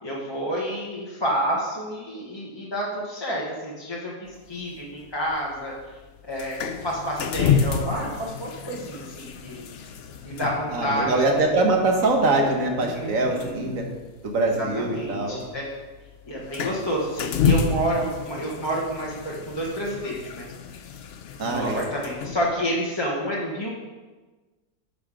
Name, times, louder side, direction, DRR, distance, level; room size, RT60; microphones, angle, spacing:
voice 1, 0.0-4.1 4.5-5.7 6.3-6.6 6.8-9.6 10.2-11.4 12.9-13.8 14.6-15.6 16.3-20.5 21.4-23.7, equal, 15° left, -5 dB, 1.2 m, -29 dB
sound 1, 4.3-22.5, left 6 dB, 65° left, 0.6 m, -30 dB
voice 2, 10.7-13.8 14.2-15.4 21.4-21.8, right 2 dB, 55° right, 2 dB, 1.6 m, -23 dB
10.5 x 6.0 x 4.9 m, 1.3 s
omnidirectional pair, 1.7 m